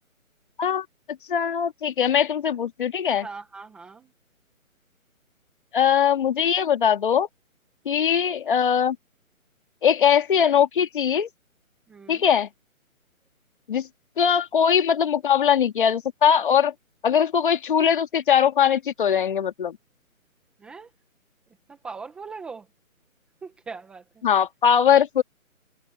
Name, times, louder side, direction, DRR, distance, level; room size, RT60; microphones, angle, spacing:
voice 1, 1.3-3.3 5.7-7.3 7.9-9.0 9.8-11.3 12.1-12.5 13.7-13.9 14.2-16.7 17.0-19.8 24.2-25.2, left 8 dB, 35° left, 2.3 m, -21 dB
voice 2, 3.1-4.1 11.9-12.3 20.6-20.9 21.7-22.6 23.4-24.0, right 4 dB, ahead, 1.2 m, -40 dB
hypercardioid pair, 165°, 42 cm